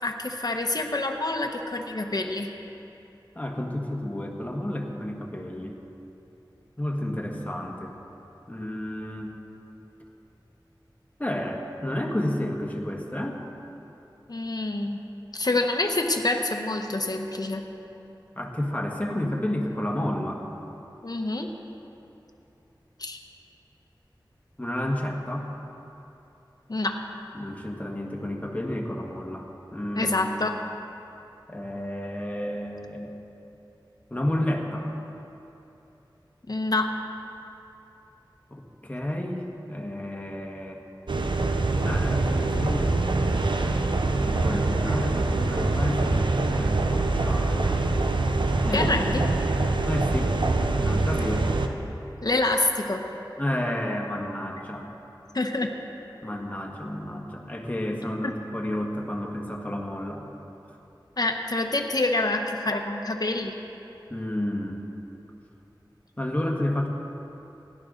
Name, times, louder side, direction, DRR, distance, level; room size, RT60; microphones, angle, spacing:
voice 1, 0.0-2.5 14.3-15.0 15.3-17.6 21.0-21.5 23.0-23.2 26.7-26.9 29.9-30.5 36.5-36.9 48.7-49.2 52.2-53.1 55.3-55.7 58.2-58.3 61.2-63.5, left 2 dB, 55° left, 3 dB, 0.9 m, -27 dB
voice 2, 3.3-5.8 6.8-7.9 8.5-9.3 11.2-13.4 18.4-20.4 24.6-25.5 27.3-29.5 29.7-30.1 31.5-33.1 34.1-34.9 38.5-40.8 41.8-43.0 44.1-47.7 48.6-48.9 49.8-50.3 50.8-51.5 53.4-54.9 56.2-60.3 64.1-64.8 66.2-66.9, left 1 dB, 20° left, 0 dB, 1.4 m, -31 dB
sound 1, 41.1-51.7, right 2 dB, 75° right, 0.7 m, -24 dB
17.0 x 11.0 x 3.8 m, 2.9 s
wide cardioid pair, 55°, 8 cm